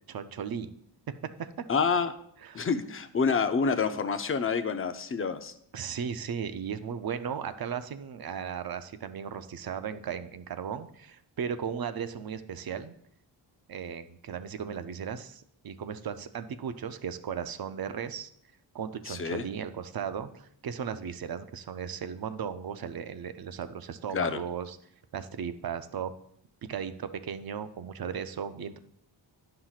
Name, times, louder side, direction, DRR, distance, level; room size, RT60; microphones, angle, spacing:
voice 1, 0.1-0.7 2.4-2.7 5.7-13.0 13.7-18.3 18.7-24.8 25.1-26.1 26.7-28.8, right 7 dB, 55° right, 10 dB, 0.5 m, -36 dB
voice 2, 1.7-2.1 2.5-5.5 19.1-19.4 24.1-24.4, left 5 dB, 30° left, 9 dB, 0.5 m, -28 dB
11.5 x 5.8 x 2.4 m, 0.69 s
wide cardioid pair, 130°, 45 cm